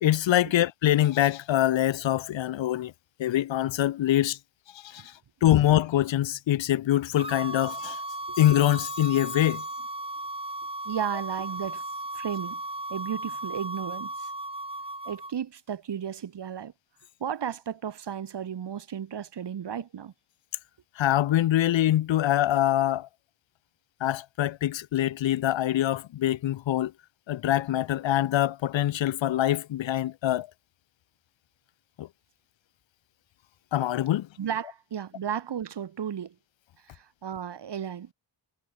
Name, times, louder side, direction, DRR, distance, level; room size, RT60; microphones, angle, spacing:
voice 1, 0.0-2.9 3.2-4.4 4.8-5.0 5.4-8.0 8.4-9.6 21.0-23.1 24.0-26.9 27.3-30.5 32.0-32.1 33.7-34.3, left 13 dB, 85° left, 0.7 m, -24 dB
sound 1, 7.2-15.3, right 2 dB, 10° right, 3.8 m, -36 dB
voice 2, 10.8-11.8 12.1-12.6 12.9-14.3 15.0-16.7 17.2-20.1 34.4-36.3 36.8-38.1, right 8 dB, 65° right, 1.8 m, -34 dB
wide cardioid pair, 175°, 45 cm